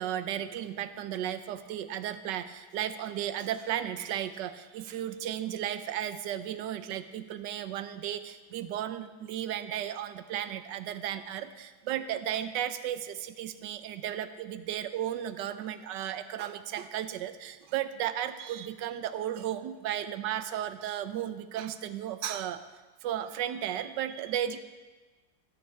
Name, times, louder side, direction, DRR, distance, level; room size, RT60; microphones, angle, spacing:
voice 1, 0.0-22.6 23.0-24.6, right 11 dB, 70° right, 11 dB, 1.2 m, -34 dB
15.0 x 13.5 x 3.4 m, 1.3 s
omnidirectional pair, 2.2 m